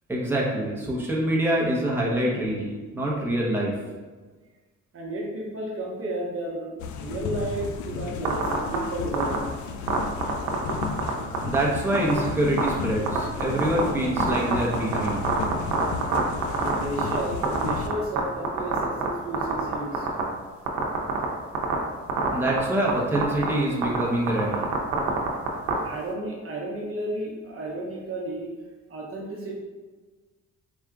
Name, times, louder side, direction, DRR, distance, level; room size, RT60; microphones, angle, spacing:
voice 1, 0.1-3.7 11.4-15.3 22.3-24.6, right 1 dB, 5° right, -4 dB, 0.9 m, -25 dB
voice 2, 4.9-6.7 7.0-9.5 16.5-20.1 25.1-25.2 25.8-28.5 28.9-29.6, right 1 dB, 45° right, -2 dB, 0.9 m, -33 dB
sound 1, 6.8-17.9, left 5 dB, 75° left, 0.5 m, -34 dB
sound 2, 8.2-8.8 9.1-9.4 9.9-11.1 11.3-11.6 11.9-12.2 12.6-12.7 13.1-13.8 14.2-17.2 17.4-18.2 18.4-19.1 19.3-20.2 20.7-21.2 21.5-21.7 22.1-22.6 22.9-23.0 23.2-23.5 23.8-24.0 24.3-25.7, right 8 dB, 85° right, 0.7 m, -24 dB
4.3 x 2.4 x 3.6 m, 1.4 s
cardioid pair, 90°, 30 cm